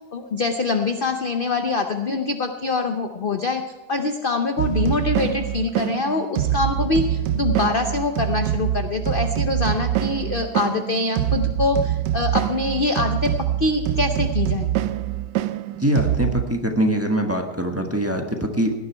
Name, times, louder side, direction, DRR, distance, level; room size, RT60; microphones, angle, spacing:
voice 1, 0.1-3.6 3.9-13.3 13.6-14.8, left 3 dB, 45° left, 6 dB, 0.8 m, -24 dB
sound 1, 4.6-16.4, right 12 dB, 90° right, 1.2 m, -24 dB
voice 2, 15.7-18.7, right 1 dB, 10° right, 2 dB, 1.3 m, -23 dB
17.5 x 10.5 x 4.5 m, 1.2 s
omnidirectional pair, 1.7 m